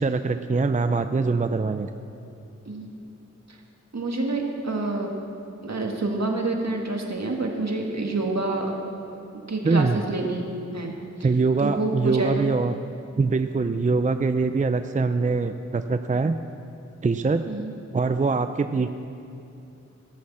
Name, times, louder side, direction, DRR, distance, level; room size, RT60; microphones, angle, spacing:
voice 1, 0.0-1.9 9.6-10.0 11.2-12.8 13.2-16.4 17.0-17.4 17.9-18.9, right 4 dB, 25° right, 9 dB, 0.4 m, -23 dB
voice 2, 3.9-5.1 5.6-8.8 9.5-10.4 10.7-11.3 11.6-12.5 17.5-17.7, right 2 dB, 65° right, 1 dB, 1.7 m, -28 dB
16.0 x 6.4 x 7.2 m, 2.7 s
wide cardioid pair, 45°, 29 cm